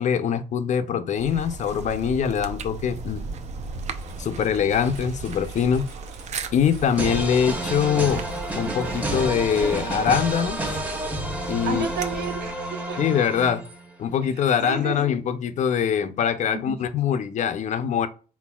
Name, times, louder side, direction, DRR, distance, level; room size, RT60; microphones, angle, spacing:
voice 1, 0.0-3.2 4.2-5.9 6.5-8.2 8.5-10.8 11.5-11.9 13.0-13.6 14.0-18.1, left 8 dB, 45° left, 0.5 m, -23 dB
sound 1, 1.1-12.6, right 4 dB, 45° right, 0.5 m, -37 dB
Engine, 2.7-11.1, right 1 dB, 85° right, 1.6 m, -45 dB
sound 2, 7.0-13.9, right 1 dB, 10° right, 0.8 m, -30 dB
voice 2, 11.7-13.0 14.6-15.1 16.5-16.8, right 6 dB, 70° right, 1.0 m, -31 dB
4.1 x 3.8 x 2.3 m
cardioid pair, 110°, 17 cm